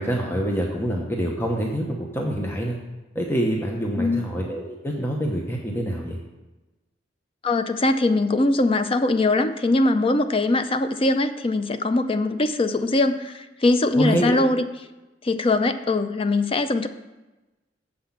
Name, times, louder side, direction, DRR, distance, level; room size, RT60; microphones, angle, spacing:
voice 1, 0.0-2.8 3.1-6.2 14.0-14.4, equal, 15° left, -1 dB, 0.9 m, -26 dB
voice 2, 7.4-14.6 15.2-16.9, left 2 dB, 30° left, 9 dB, 0.5 m, -21 dB
7.6 x 5.9 x 7.1 m, 1.1 s
head